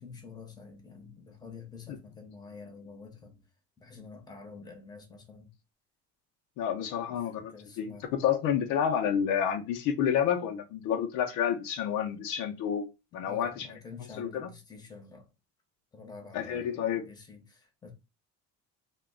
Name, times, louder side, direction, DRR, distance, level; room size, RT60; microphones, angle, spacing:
voice 1, 0.0-3.4 3.8-5.5 7.1-8.1 13.1-15.3 15.9-17.9, left 5 dB, 15° left, 0.8 m, -48 dB
voice 2, 6.6-13.7 14.2-14.5 16.3-17.1, left 8 dB, 75° left, 0.6 m, -29 dB
2.2 x 2.2 x 3.5 m
cardioid pair, 120°, 31 cm